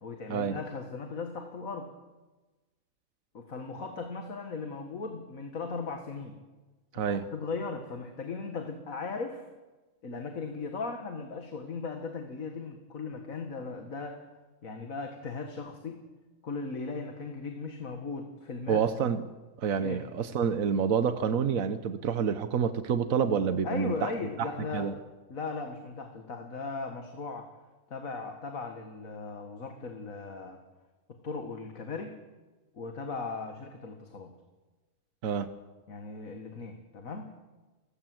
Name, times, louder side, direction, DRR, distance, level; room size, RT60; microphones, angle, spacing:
voice 1, 0.0-1.9 3.3-6.4 6.9-9.4 10.0-14.2 14.6-16.0 16.4-18.8 19.8-20.0 23.6-24.9 25.3-27.5 27.9-30.6 31.2-32.2 32.7-34.3 35.9-37.3, left 4 dB, 80° left, 5 dB, 2.2 m, -37 dB
voice 2, 6.9-7.2 18.7-19.2 19.6-24.1 24.4-25.0 35.2-35.5, right 7 dB, 80° right, 11 dB, 1.4 m, -28 dB
29.0 x 16.5 x 7.8 m, 1.2 s
omnidirectional pair, 1.4 m